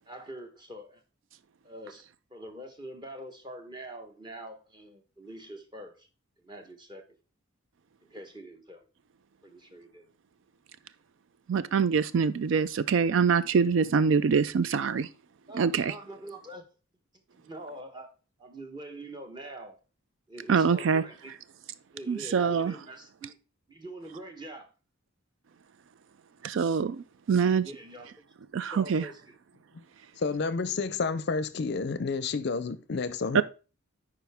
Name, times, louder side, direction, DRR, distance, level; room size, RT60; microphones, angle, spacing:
voice 1, 0.1-1.0 1.6-2.0 2.3-6.1 6.4-7.0 8.1-8.8 9.4-10.1 15.5-16.6 17.3-18.1 18.4-19.8 20.3-21.4 21.9-23.4 23.7-24.7 27.6-28.2 28.6-29.4, right 1 dB, 20° right, 1.1 m, -44 dB
voice 2, 11.5-15.1 15.5-15.9 20.5-21.0 22.1-22.8 26.4-27.7 28.5-29.1 33.3-33.4, right 6 dB, 65° right, 0.4 m, -24 dB
voice 3, 30.2-33.4, left 4 dB, 50° left, 0.5 m, -30 dB
9.0 x 4.9 x 3.4 m
head